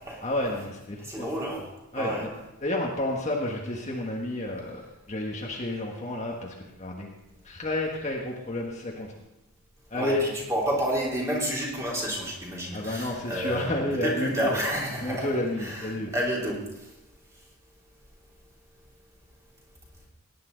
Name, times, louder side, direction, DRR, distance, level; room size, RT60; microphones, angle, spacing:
voice 1, 0.2-1.3 1.9-2.3 2.6-4.8 5.1-7.1 7.4-9.1 9.9-10.2 12.7-14.6 15.0-16.1, left 1 dB, 30° left, -2 dB, 1.5 m, -30 dB
voice 2, 1.0-1.6 1.9-2.3 9.9-15.3 15.6-16.6, equal, 15° right, -4 dB, 3.2 m, -30 dB
18.0 x 10.5 x 3.9 m, 0.98 s
head